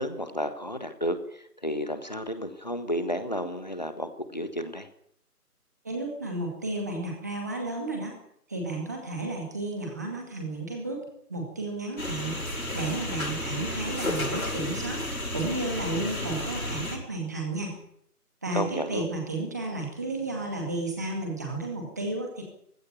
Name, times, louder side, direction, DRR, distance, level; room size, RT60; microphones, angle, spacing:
voice 1, 0.0-4.9 18.5-19.1, equal, 25° left, 11 dB, 1.4 m, -32 dB
voice 2, 5.8-8.1 8.5-11.0 11.3-17.7 18.4-22.4, right 2 dB, 10° right, 1 dB, 2.2 m, -33 dB
sound 1, 12.0-17.0, left 1 dB, 60° left, 7.8 m, -32 dB
17.5 x 16.5 x 9.5 m, 0.71 s
figure-of-eight pair, 165°, 47 cm